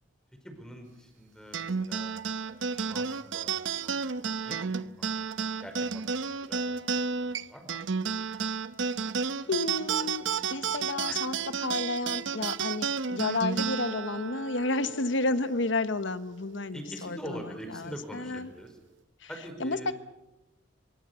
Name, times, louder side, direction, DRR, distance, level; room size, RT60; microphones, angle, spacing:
voice 1, 0.4-2.1 2.4-5.3 5.6-8.0 11.1-11.2 16.7-18.7 19.3-19.9, equal, 5° left, 4 dB, 4.9 m, -45 dB
sound 1, 1.5-16.3, right 5 dB, 75° right, 0.7 m, -32 dB
voice 2, 9.4-10.2 10.5-18.5 19.2-19.3 19.6-19.9, left 2 dB, 75° left, 13 dB, 1.1 m, -31 dB
24.0 x 23.5 x 6.9 m, 0.95 s
head